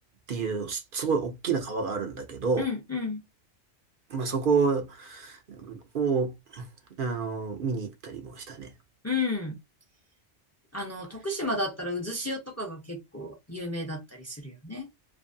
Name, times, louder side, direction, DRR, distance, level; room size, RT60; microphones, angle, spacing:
voice 1, 0.3-2.7 4.1-6.7 7.0-8.7, right 5 dB, 55° right, 0.7 m, -29 dB
voice 2, 2.6-3.2 9.0-9.6 10.7-14.9, left 2 dB, 15° left, 0.6 m, -32 dB
2.6 x 2.5 x 2.6 m
omnidirectional pair, 1.2 m